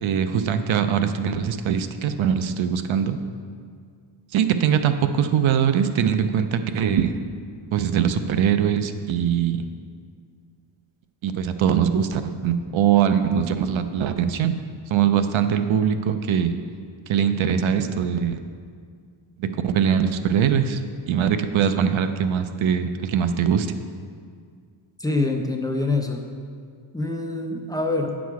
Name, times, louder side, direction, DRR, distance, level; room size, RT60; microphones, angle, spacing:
voice 1, 0.0-3.2 4.3-7.2 7.7-9.7 11.2-14.6 14.9-16.5 17.1-18.4 19.4-23.7, right 8 dB, 80° right, 9 dB, 0.6 m, -22 dB
voice 2, 25.0-26.2 26.9-28.2, left 2 dB, 10° left, 2 dB, 0.6 m, -25 dB
9.2 x 6.1 x 4.7 m, 2.1 s
wide cardioid pair, 130°, 47 cm